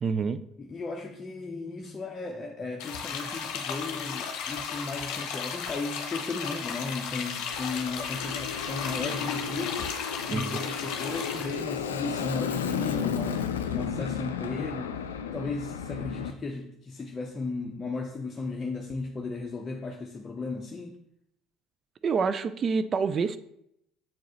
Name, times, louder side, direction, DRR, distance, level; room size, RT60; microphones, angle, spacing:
voice 1, 0.0-0.4 10.3-10.6 22.0-23.4, right 5 dB, 35° right, 12 dB, 0.3 m, -27 dB
voice 2, 0.6-9.9 10.3-14.9 15.3-21.0, left 3 dB, 25° left, 1 dB, 0.7 m, -35 dB
sound 1, 2.8-11.6, left 6 dB, 55° left, 0.8 m, -35 dB
Aircraft, 7.5-16.3, left 7 dB, 75° left, 0.4 m, -33 dB
7.1 x 4.6 x 3.0 m, 0.77 s
figure-of-eight pair, 60°, 0 cm